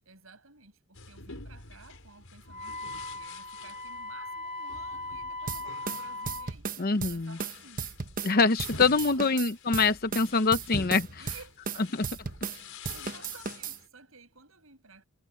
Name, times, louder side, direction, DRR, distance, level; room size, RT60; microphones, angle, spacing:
voice 1, 0.0-7.8 8.7-9.5 11.2-11.8 12.4-15.0, right 4 dB, 80° right, 7.4 m, -54 dB
sound 1, 0.9-13.9, left 3 dB, 80° left, 5.1 m, -47 dB
Wind instrument woodwind instrument, 2.5-6.5, left 2 dB, 30° left, 2.3 m, -39 dB
sound 2, 5.5-8.3 8.6-12.6 12.8-13.8, right 5 dB, 40° right, 1.0 m, -35 dB
voice 2, 6.8-7.4 8.2-11.2 11.9-12.1, left 4 dB, 45° left, 0.8 m, -25 dB
head